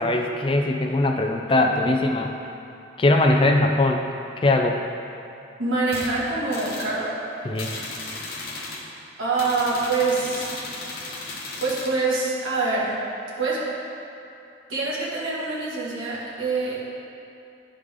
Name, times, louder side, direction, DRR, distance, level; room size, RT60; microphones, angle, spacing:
voice 1, 0.0-2.3 3.0-4.0 4.4-4.8 7.4-7.7, left 2 dB, 25° left, 3 dB, 0.4 m, -20 dB
voice 2, 5.6-7.2 9.2-10.6 11.6-13.0 13.4-13.6 14.7-16.8, right 3 dB, 90° right, -7 dB, 1.8 m, -25 dB
sound 1, 5.9-6.1 6.5-6.9 7.5-8.9 9.3-11.9, left 3 dB, 50° left, 1.0 m, -35 dB
11.0 x 5.0 x 3.5 m, 2.7 s
head